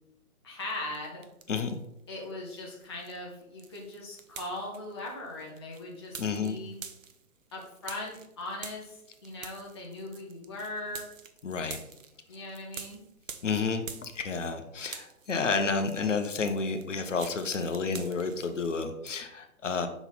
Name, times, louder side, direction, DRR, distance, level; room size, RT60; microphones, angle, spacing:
voice 1, 0.4-1.2 2.1-6.8 7.5-11.1 12.3-13.0, left 2 dB, 20° left, -3 dB, 0.6 m, -39 dB
sound 1, 0.7-1.9 2.2-14.6 14.8-18.7, right 6 dB, 60° right, 0.7 m, -47 dB
voice 2, 6.2-6.6 11.4-11.8 13.4-19.9, left 4 dB, 55° left, 7 dB, 0.8 m, -30 dB
5.8 x 4.0 x 4.0 m, 0.85 s
figure-of-eight pair, 135°, 44 cm